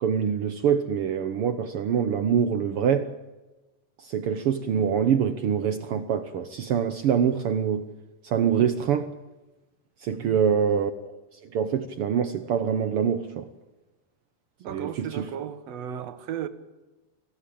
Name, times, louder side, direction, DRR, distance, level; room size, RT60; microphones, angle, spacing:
voice 1, 0.0-3.1 4.0-7.9 8.2-9.1 10.0-10.9 11.5-13.5 14.7-15.3, right 8 dB, 85° right, 1.2 m, -25 dB
voice 2, 14.6-16.5, right 9 dB, 60° right, 2.2 m, -35 dB
25.0 x 16.5 x 8.6 m
omnidirectional pair, 3.9 m